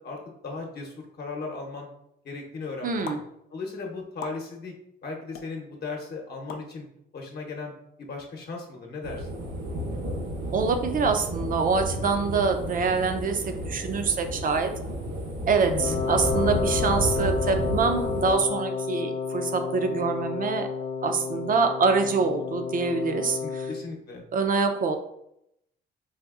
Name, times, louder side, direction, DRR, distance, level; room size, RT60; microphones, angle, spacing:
voice 1, 0.0-1.9 2.2-3.2 3.5-4.7 5.0-6.9 7.1-7.7 8.0-9.3 15.7-16.0 23.4-24.2, left 3 dB, 55° left, 1 dB, 0.9 m, -37 dB
voice 2, 2.8-3.2 10.5-14.7 15.5-20.7 21.0-23.7 24.3-25.0, right 4 dB, 45° right, 6 dB, 0.5 m, -25 dB
sound 1, 3.0-3.2 4.2-4.4 5.3-5.5 6.5-6.7, left 6 dB, 90° left, 0.4 m, -37 dB
sound 2, 9.0-18.3, equal, 70° right, 1.1 m, -32 dB
Wind instrument woodwind instrument, 15.8-23.8, left 5 dB, 30° left, 0.4 m, -31 dB
4.1 x 2.5 x 2.4 m, 0.78 s
cardioid pair, 90°, 20 cm